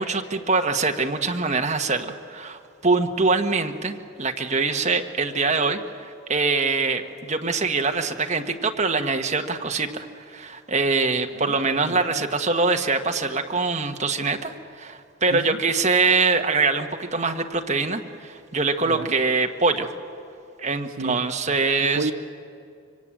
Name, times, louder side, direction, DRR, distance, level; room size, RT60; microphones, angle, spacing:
voice 1, 0.0-19.9 20.6-22.1, right 4 dB, 35° right, 4 dB, 1.3 m, -24 dB
voice 2, 11.3-12.2 15.3-15.6 18.8-19.2 21.0-21.2 21.8-22.1, right 2 dB, 90° right, 3 dB, 1.0 m, -32 dB
24.5 x 24.5 x 8.9 m, 2.5 s
head